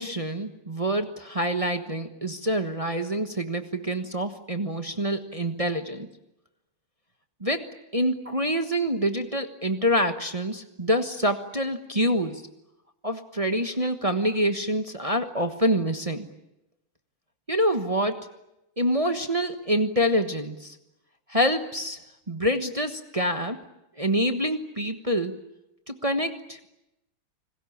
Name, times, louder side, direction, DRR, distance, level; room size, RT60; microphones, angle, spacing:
voice 1, 0.0-6.1 7.4-7.7 7.9-12.4 13.0-16.3 17.5-18.3 18.8-20.7 21.3-22.0 22.3-23.6 24.0-25.4 25.9-26.7, equal, 20° right, 7 dB, 1.0 m, -26 dB
29.0 x 20.5 x 8.7 m, 0.87 s
omnidirectional pair, 2.4 m